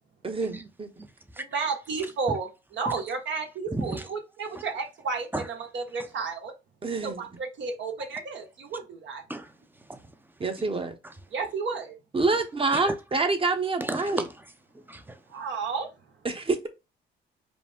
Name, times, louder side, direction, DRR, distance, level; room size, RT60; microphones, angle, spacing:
voice 1, 0.2-0.9 6.8-7.2 10.4-11.0 12.1-14.2 16.2-16.7, right 3 dB, 25° right, 1.1 m, -27 dB
voice 2, 1.4-2.5 2.7-5.3 5.7-6.5 7.0-9.2 11.3-11.9 15.3-15.9, right 4 dB, 65° right, 1.5 m, -32 dB
voice 3, 2.0-2.4 2.9-3.0 3.7-4.1 4.5-4.6 5.3-5.5 5.9-6.1 8.0-8.1 9.3-10.1 11.0-11.1 12.7-13.0 13.8-14.3 14.7-15.2, right 1 dB, 10° right, 0.7 m, -35 dB
5.0 x 2.2 x 3.6 m
cardioid pair, 90°, 20 cm